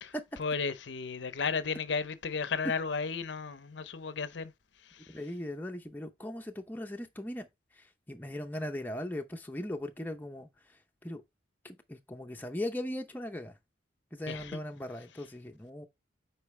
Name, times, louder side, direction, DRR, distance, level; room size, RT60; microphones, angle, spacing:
voice 1, 0.4-4.5 4.8-5.2 14.3-14.6, left 5 dB, 70° left, 0.6 m, -34 dB
voice 2, 5.1-7.5 7.7-11.2 11.6-13.6 14.1-15.9, left 1 dB, 10° left, 0.6 m, -39 dB
8.3 x 4.5 x 3.2 m
head